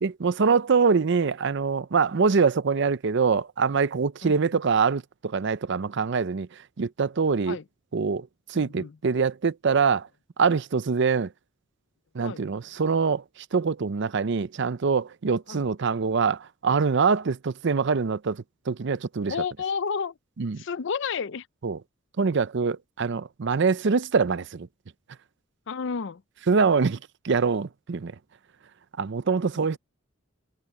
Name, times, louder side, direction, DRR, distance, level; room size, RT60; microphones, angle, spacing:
voice 1, 0.0-6.5 6.8-7.6 7.9-10.1 10.4-11.3 12.1-13.2 13.5-19.3 20.4-20.6 21.6-21.8 22.2-24.7 26.5-27.0 27.2-28.1 29.0-29.8, right 5 dB, 60° right, 0.6 m, -24 dB
voice 2, 8.5-9.0 12.2-12.4 15.5-15.6 19.3-20.2 20.6-21.5 25.7-26.2 29.5-29.8, left 6 dB, 65° left, 0.5 m, -31 dB
head